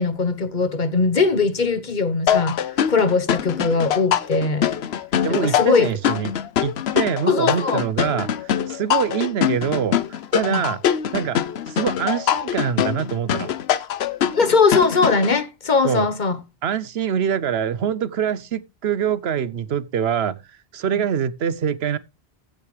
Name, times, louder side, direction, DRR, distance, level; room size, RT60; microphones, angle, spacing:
voice 1, 0.0-2.6 2.9-4.7 5.3-5.9 7.3-7.8 10.5-10.6 14.3-16.4 20.9-21.0, left 4 dB, 50° left, 1.1 m, -20 dB
sound 1, 2.3-15.3, left 9 dB, 75° left, 0.9 m, -23 dB
voice 2, 5.2-6.3 6.6-10.0 10.3-10.8 11.1-11.4 11.7-13.5 15.8-16.1 16.6-20.4 20.7-22.0, right 8 dB, 80° right, 1.0 m, -24 dB
15.5 x 6.6 x 3.2 m
omnidirectional pair, 1.1 m